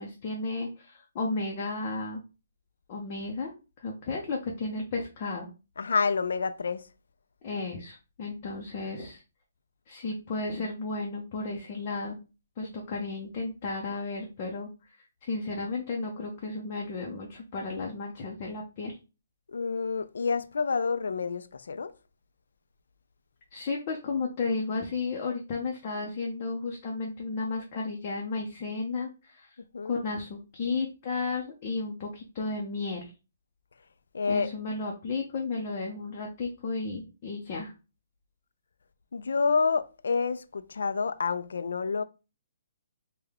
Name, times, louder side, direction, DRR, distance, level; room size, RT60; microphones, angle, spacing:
voice 1, 0.0-2.2 2.9-3.5 3.8-5.5 7.4-9.2 9.9-12.2 12.6-14.7 15.2-19.0 23.5-29.5 29.8-33.1 34.3-37.7, left 3 dB, 30° left, 0.6 m, -33 dB
voice 2, 5.8-6.9 12.6-12.9 19.5-21.9 29.7-30.0 34.1-34.5 39.1-42.0, left 5 dB, 85° left, 0.3 m, -28 dB
3.4 x 2.2 x 3.5 m
hypercardioid pair, 170°, 0 cm